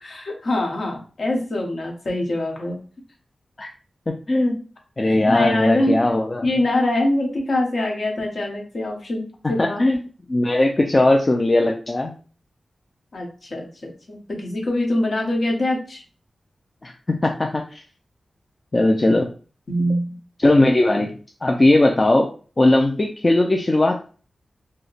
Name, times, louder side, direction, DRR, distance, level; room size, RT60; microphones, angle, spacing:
voice 1, 0.0-2.8 5.0-6.0 6.4-9.8 13.1-16.0 19.7-20.2, left 1 dB, 55° left, 0 dB, 1.0 m, -24 dB
voice 2, 4.1-4.6 5.0-6.4 9.6-10.0 10.3-12.1 16.8-16.9 17.2-17.8 18.7-19.3 20.4-22.3 22.6-24.1, left 2 dB, 30° left, 2 dB, 0.3 m, -18 dB
2.8 x 2.1 x 4.0 m, 0.38 s
wide cardioid pair, 140°, 0 cm